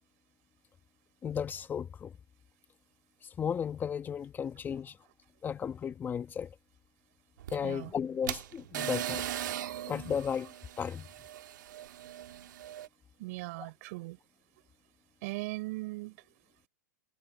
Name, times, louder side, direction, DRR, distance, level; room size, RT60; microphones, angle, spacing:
voice 1, 1.2-2.1 3.2-5.0 5.4-6.5 7.5-9.3 9.9-11.1, left 7 dB, 20° left, 1.4 m, -34 dB
sound 1, 7.4-12.9, right 12 dB, 80° right, 1.8 m, -39 dB
voice 2, 13.2-14.2 15.2-16.2, right 22 dB, 55° right, 6.1 m, -39 dB
hypercardioid pair, 130°, 10 cm